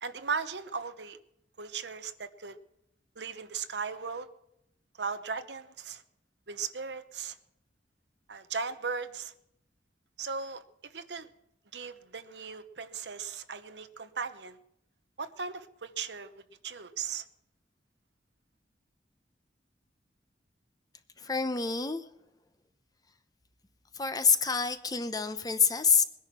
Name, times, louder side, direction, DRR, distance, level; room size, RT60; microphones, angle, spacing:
voice 1, 0.0-1.2 1.6-2.6 3.2-4.3 5.0-6.0 6.5-7.4 8.3-9.3 10.2-11.3 11.7-14.6 15.2-16.3 16.6-17.2, right 5 dB, 75° right, 11 dB, 1.0 m, -37 dB
voice 2, 21.2-22.0 23.9-26.0, left 5 dB, 20° left, 10 dB, 0.8 m, -27 dB
21.5 x 10.5 x 6.1 m, 0.80 s
head